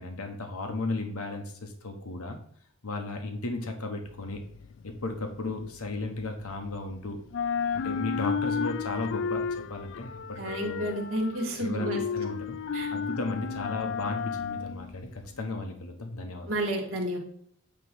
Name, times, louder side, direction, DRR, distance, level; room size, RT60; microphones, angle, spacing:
voice 1, 0.0-2.4 2.8-4.4 4.8-7.2 7.7-10.9 11.6-12.6 12.9-16.6, left 2 dB, 85° left, 4 dB, 1.1 m, -35 dB
sound 1, 4.1-6.9 7.2-15.4, left 6 dB, 55° left, 0.3 m, -33 dB
voice 2, 10.4-12.0 12.7-12.9 16.5-17.2, right 1 dB, 65° right, -1 dB, 2.2 m, -30 dB
9.0 x 3.1 x 5.4 m, 0.65 s
head